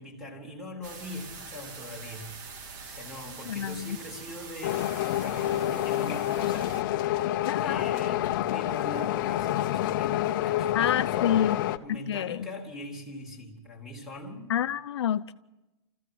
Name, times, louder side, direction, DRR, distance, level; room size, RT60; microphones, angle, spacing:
voice 1, 0.0-2.4 2.8-11.4 11.8-14.6, left 1 dB, 5° right, 3.1 m, -41 dB
sound 1, 0.8-6.8, right 5 dB, 45° right, 2.0 m, -44 dB
voice 2, 3.5-4.0 7.4-7.9 10.7-11.6 11.9-12.5 14.5-15.3, left 10 dB, 80° left, 0.7 m, -28 dB
sound 2, 4.6-11.8, left 13 dB, 50° left, 0.8 m, -28 dB
26.5 x 15.0 x 7.8 m
hypercardioid pair, 160°, 14 cm